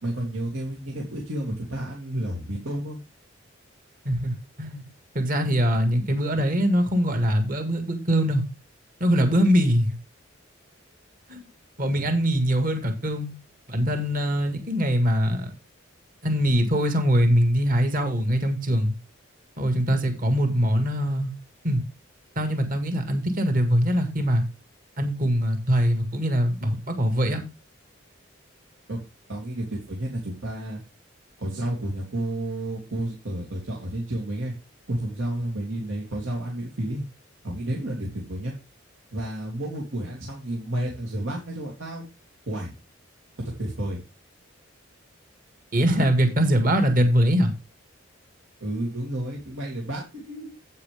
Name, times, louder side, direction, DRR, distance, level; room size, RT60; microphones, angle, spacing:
voice 1, 0.0-3.0 11.9-12.1 28.9-29.0 29.3-30.8 31.4-34.5 34.9-37.0 37.4-38.5 39.1-42.0 42.5-42.7 43.4-44.0 48.6-50.6, right 1 dB, 80° right, -2 dB, 2.7 m, -31 dB
voice 2, 4.1-4.8 5.2-8.4 9.0-9.9 11.3-11.4 11.8-13.3 13.7-15.5 16.2-18.9 19.6-21.3 21.6-21.8 22.4-24.4 25.0-27.4 45.7-47.5, equal, 45° right, 6 dB, 1.9 m, -22 dB
9.5 x 8.6 x 3.5 m, 0.27 s
head